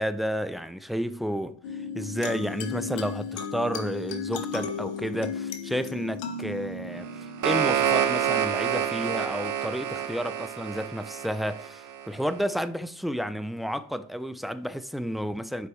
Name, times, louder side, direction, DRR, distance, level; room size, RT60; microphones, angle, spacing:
voice 1, 0.0-7.1 7.4-15.7, equal, ahead, 0.3 m, -31 dB
sound 1, 1.6-8.6, left 5 dB, 85° left, 0.9 m, -35 dB
sound 2, 7.0-12.1, right 9 dB, 45° right, 0.9 m, -28 dB
9.9 x 4.6 x 3.1 m
supercardioid pair, 65°, 43 cm